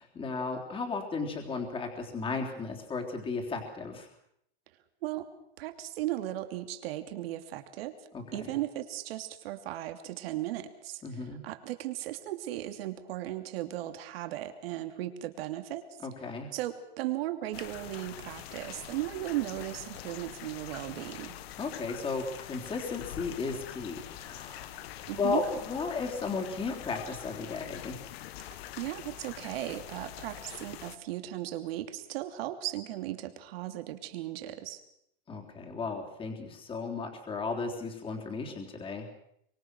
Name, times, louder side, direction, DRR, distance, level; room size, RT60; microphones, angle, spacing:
voice 1, 0.0-4.1 8.1-8.5 11.0-11.4 16.0-16.5 21.6-24.9 25.2-28.0 35.3-39.0, left 4 dB, 15° left, 1 dB, 3.6 m, -35 dB
voice 2, 5.6-8.0 8.3-11.0 11.4-15.9 16.5-21.3 25.0-25.4 28.5-34.8, right 14 dB, 65° right, 7 dB, 2.9 m, -36 dB
sound 1, 17.5-31.0, left 12 dB, 70° left, 1.5 m, -44 dB
24.5 x 23.5 x 6.3 m, 0.74 s
supercardioid pair, 155°, 31 cm